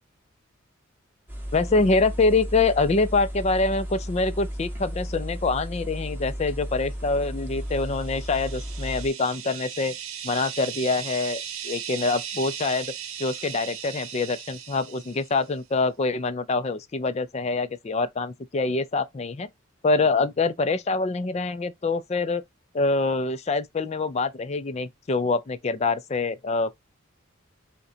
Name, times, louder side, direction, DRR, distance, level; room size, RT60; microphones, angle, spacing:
sound 1, 1.3-9.1, equal, 10° right, 1.5 m, -34 dB
voice 1, 1.5-10.0 10.2-12.9 13.2-19.5 19.8-22.4 22.7-26.7, left 3 dB, 30° left, 0.4 m, -25 dB
sound 2, 7.7-15.5, right 9 dB, 80° right, 0.8 m, -37 dB
5.4 x 2.2 x 3.8 m
head